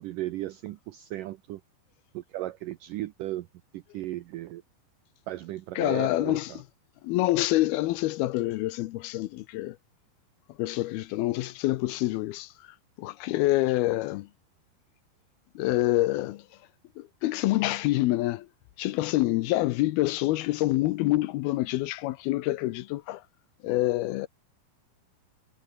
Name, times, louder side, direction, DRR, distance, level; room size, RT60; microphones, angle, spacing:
voice 1, 0.0-1.6 2.1-3.5 3.7-4.6 5.3-6.6, right 15 dB, 85° right, 1.9 m, -36 dB
voice 2, 5.8-6.6 7.0-9.8 10.6-12.5 13.0-14.3 15.6-16.4 17.0-18.5 18.8-23.2 23.6-24.3, left 17 dB, 80° left, 2.5 m, -26 dB
omnidirectional pair, 4.8 m